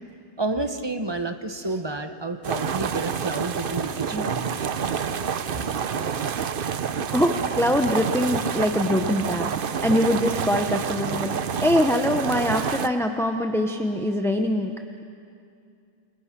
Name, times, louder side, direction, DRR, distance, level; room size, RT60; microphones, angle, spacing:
voice 1, 0.4-4.6, right 2 dB, 20° right, 7 dB, 0.9 m, -30 dB
sound 1, 2.4-12.9, right 7 dB, 50° right, 0.7 m, -28 dB
voice 2, 7.1-14.7, left 1 dB, 5° left, 4 dB, 0.6 m, -23 dB
29.0 x 24.0 x 6.0 m, 2.4 s
omnidirectional pair, 1.5 m